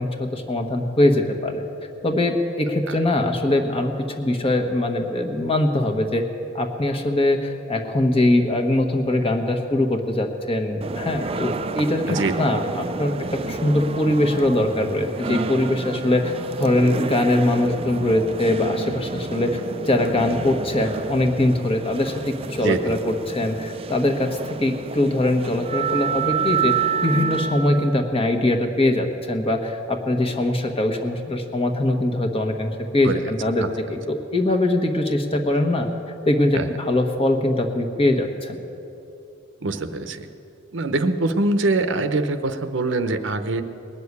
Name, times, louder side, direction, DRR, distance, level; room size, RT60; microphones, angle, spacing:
voice 1, 0.0-1.6 2.0-6.2 6.5-19.6 19.9-22.2 22.5-26.7 27.0-35.9 36.3-38.6, left 1 dB, 30° left, 3 dB, 1.2 m, -22 dB
sound 1, 10.8-28.0, right 5 dB, 30° right, 0.5 m, -29 dB
voice 2, 22.6-22.9 33.0-33.2 33.6-33.7 36.5-36.7 39.6-40.3 40.7-43.6, right 2 dB, 70° right, 9 dB, 0.8 m, -23 dB
19.5 x 6.8 x 9.6 m, 2.8 s
head